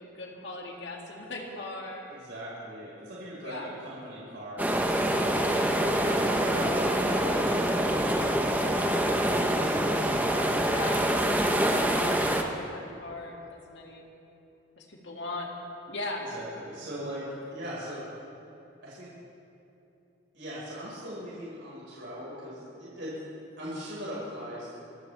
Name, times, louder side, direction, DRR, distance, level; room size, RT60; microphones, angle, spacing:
voice 1, 0.0-2.0 3.4-3.7 10.6-11.0 12.3-14.1 14.8-15.5 15.9-16.3, left 2 dB, 65° left, -1 dB, 2.4 m, -39 dB
voice 2, 2.1-5.3 5.5-7.6 8.0-9.7 16.3-17.2 17.5-18.0 18.8-19.1 20.3-23.2 23.6-24.7, equal, 70° right, -8 dB, 5.0 m, -40 dB
sound 1, 4.6-12.4, right 1 dB, 10° right, 0.9 m, -25 dB
26.5 x 15.0 x 3.4 m, 2.8 s
head